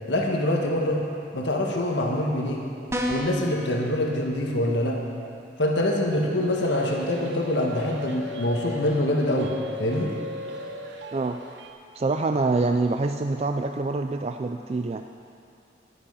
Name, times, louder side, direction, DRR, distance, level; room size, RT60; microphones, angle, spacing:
voice 1, 0.1-1.0 1.3-2.6 3.1-5.0 5.6-9.5 9.8-10.1, left 1 dB, 75° left, 0 dB, 1.5 m, -25 dB
sound 1, 2.9-3.5, equal, 15° right, 0.9 m, -28 dB
sound 2, 6.4-11.7, left 2 dB, 75° right, 1.0 m, -38 dB
voice 2, 11.1-11.4 11.9-15.0, right 3 dB, 35° right, 6 dB, 0.3 m, -25 dB
11.5 x 11.5 x 5.6 m, 2.6 s
head